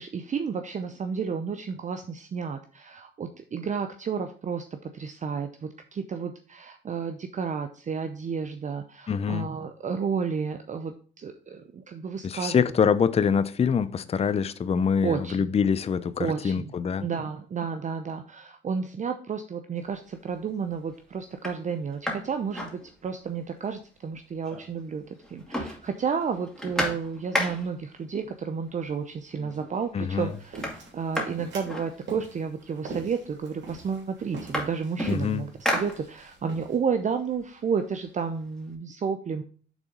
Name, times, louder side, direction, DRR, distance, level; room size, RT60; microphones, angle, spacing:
voice 1, 0.0-12.5 15.0-15.4 16.2-16.7 17.0-39.4, right 6 dB, 40° right, 0.6 m, -31 dB
voice 2, 9.1-9.5 12.2-17.1 29.9-30.3 35.1-35.4, left 6 dB, 30° left, 0.5 m, -25 dB
sound 1, 19.9-20.4 20.9-21.0 21.3-23.4 23.7-23.8 24.1-24.9 25.2-27.9 28.8-28.9 29.3-29.8 30.1-32.5 33.3-33.4 33.7-36.5 36.9-38.7, equal, 5° left, 2.5 m, -34 dB
sound 2, 30.2-36.8, right 3 dB, 65° right, 3.1 m, -43 dB
6.2 x 3.9 x 5.1 m
cardioid pair, 90°, 20 cm